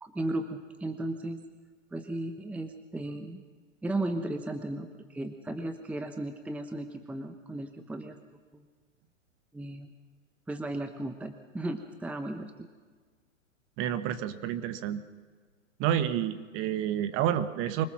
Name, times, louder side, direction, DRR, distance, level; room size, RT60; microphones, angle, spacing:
voice 1, 0.0-1.4 1.9-3.4 3.8-8.2 8.5-8.6 9.5-9.9 10.5-12.7, right 1 dB, 5° right, 8 dB, 0.9 m, -35 dB
voice 2, 13.8-15.0 15.8-17.8, right 10 dB, 30° right, 12 dB, 1.3 m, -29 dB
25.5 x 19.5 x 6.1 m, 1.5 s
hypercardioid pair, 115°, 39 cm